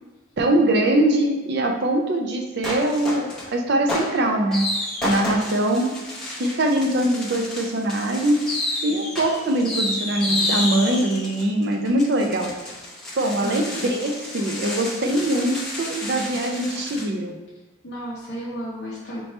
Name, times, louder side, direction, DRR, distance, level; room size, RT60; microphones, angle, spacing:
voice 1, 0.4-4.7 5.0-6.0 6.4-8.5 8.8-12.5 13.2-17.4, right 1 dB, 55° right, 2 dB, 0.5 m, -22 dB
sound 1, 2.6-3.5 3.9-17.0, left 1 dB, 5° left, 0.9 m, -30 dB
voice 2, 17.8-19.2, equal, 50° left, -7 dB, 0.6 m, -33 dB
4.5 x 2.9 x 3.2 m, 1.1 s
head